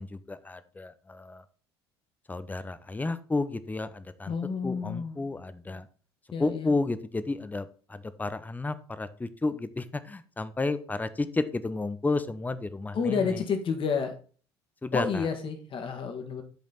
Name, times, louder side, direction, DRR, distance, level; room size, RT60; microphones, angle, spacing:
voice 1, 0.0-1.4 2.3-4.4 4.6-5.9 6.4-13.4 14.8-15.3, left 3 dB, 10° left, 14 dB, 0.7 m, -32 dB
voice 2, 4.3-5.2 6.3-6.7 12.9-14.1 14.9-16.4, left 5 dB, 35° left, 5 dB, 1.8 m, -30 dB
10.5 x 5.1 x 4.0 m, 0.41 s
figure-of-eight pair, 60°, 14 cm